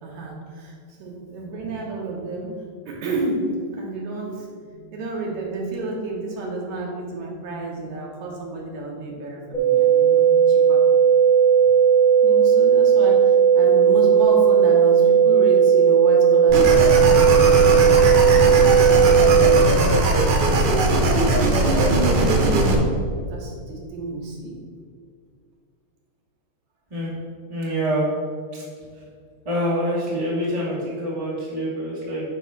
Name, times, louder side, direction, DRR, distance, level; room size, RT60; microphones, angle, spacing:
voice 1, 0.0-2.5 2.9-10.8 12.2-20.1 21.2-22.6 23.3-24.6, right 2 dB, 75° right, -2 dB, 2.5 m, -31 dB
sound 1, 9.5-19.5, right 7 dB, 80° left, 0.4 m, -15 dB
sound 2, 16.5-22.8, right 2 dB, 90° right, 0.9 m, -19 dB
voice 2, 27.5-28.1 28.5-28.6 29.4-32.2, equal, 15° right, -7 dB, 1.5 m, -25 dB
8.9 x 3.0 x 5.8 m, 2.1 s
omnidirectional pair, 3.3 m